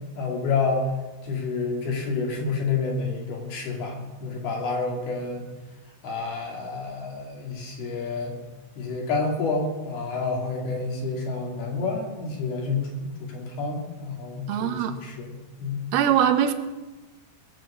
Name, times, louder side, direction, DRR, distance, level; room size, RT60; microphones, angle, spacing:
voice 1, 0.2-0.9 1.2-5.5 6.0-8.4 8.8-15.9, left 4 dB, 75° left, 0 dB, 4.5 m, -29 dB
voice 2, 14.5-14.9 15.9-16.5, right 9 dB, 90° right, 8 dB, 2.9 m, -21 dB
20.5 x 7.0 x 7.5 m, 1.2 s
omnidirectional pair, 4.5 m